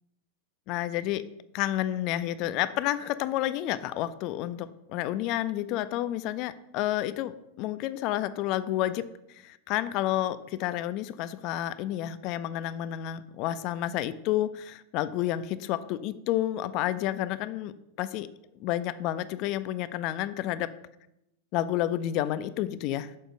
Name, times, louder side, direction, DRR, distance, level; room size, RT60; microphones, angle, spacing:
voice 1, 0.7-1.3 1.5-18.3 18.6-20.7 21.5-23.1, left 13 dB, 40° left, 14 dB, 0.4 m, -30 dB
6.4 x 4.3 x 6.2 m, 0.85 s
figure-of-eight pair, 90°, 0 cm